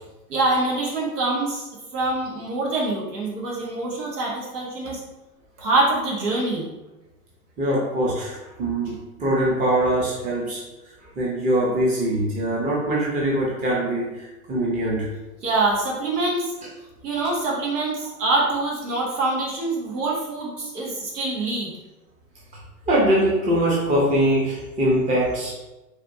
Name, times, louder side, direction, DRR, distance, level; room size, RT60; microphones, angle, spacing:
voice 1, 0.3-5.0 5.6-6.7 15.4-16.5 17.0-21.7, right 2 dB, 90° right, -4 dB, 1.2 m, -25 dB
voice 2, 7.6-8.9 9.2-10.6 11.2-15.1 22.9-25.5, right 1 dB, 15° right, -5 dB, 0.6 m, -22 dB
4.3 x 2.4 x 2.6 m, 1.0 s
hypercardioid pair, 110°, 46 cm